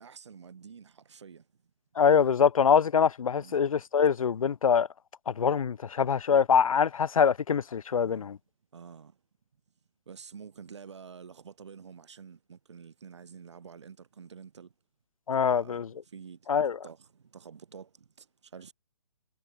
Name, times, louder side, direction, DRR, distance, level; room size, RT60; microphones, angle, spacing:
voice 1, 0.0-1.4 3.4-3.6 7.9-8.3 8.7-9.1 10.1-14.7 15.4-16.4 16.8-17.9 18.2-18.3 18.5-18.7, right 6 dB, 50° right, 5.9 m, -48 dB
voice 2, 2.0-4.9 5.3-8.4 15.3-15.9 16.5-16.8, left 7 dB, 70° left, 0.7 m, -24 dB
hypercardioid pair, 175°, 18 cm